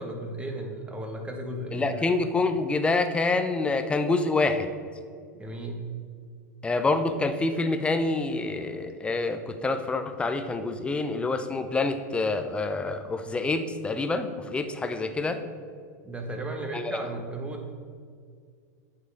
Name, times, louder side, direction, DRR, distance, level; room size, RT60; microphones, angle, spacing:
voice 1, 0.0-2.0 5.3-5.8 16.0-17.7, right 1 dB, 10° right, 2 dB, 1.2 m, -35 dB
voice 2, 1.7-4.7 6.6-15.4 16.7-17.0, left 3 dB, 10° left, 8 dB, 0.6 m, -27 dB
9.2 x 6.6 x 3.5 m, 2.1 s
hypercardioid pair, 120°, 9 cm